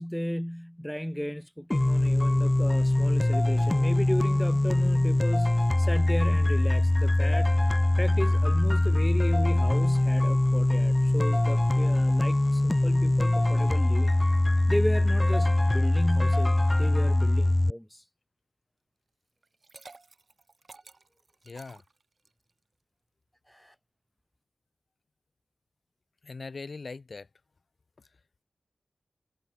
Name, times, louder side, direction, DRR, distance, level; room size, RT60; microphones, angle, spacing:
voice 1, 0.0-7.5 8.0-14.1 14.7-18.0 23.5-23.7, equal, 5° left, 1.2 m, -34 dB
sound 1, 1.7-17.7, left 1 dB, 25° left, 0.7 m, -23 dB
Liquid, 19.4-22.5, right 3 dB, 60° right, 4.3 m, -52 dB
voice 2, 21.4-21.8 26.2-27.3 28.0-28.1, left 4 dB, 65° left, 4.7 m, -41 dB
wide cardioid pair, 65°, 0 cm